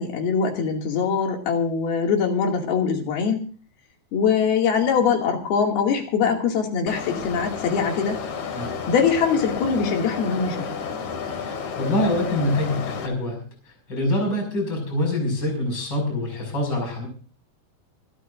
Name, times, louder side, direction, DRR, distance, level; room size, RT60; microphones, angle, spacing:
voice 1, 0.0-3.4 4.1-8.2 8.9-10.7, left 6 dB, 75° left, 2 dB, 4.3 m, -22 dB
sound 1, 6.9-13.1, left 6 dB, 55° left, 2.9 m, -31 dB
voice 2, 11.4-17.1, left 1 dB, 25° left, 2 dB, 6.4 m, -25 dB
26.5 x 13.0 x 2.6 m, 0.39 s
omnidirectional pair, 4.4 m